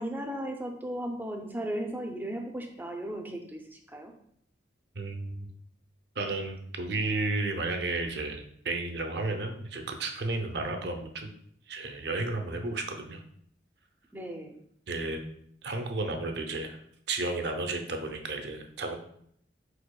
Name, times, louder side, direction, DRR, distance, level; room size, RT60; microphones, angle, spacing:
voice 1, 0.0-4.1 14.1-14.6, right 1 dB, 10° right, 3 dB, 0.4 m, -36 dB
voice 2, 4.9-5.5 6.2-11.3 11.7-13.2 14.9-15.2 15.6-16.8 17.1-19.0, right 2 dB, 60° right, 4 dB, 0.6 m, -32 dB
4.9 x 4.3 x 2.3 m, 0.68 s
head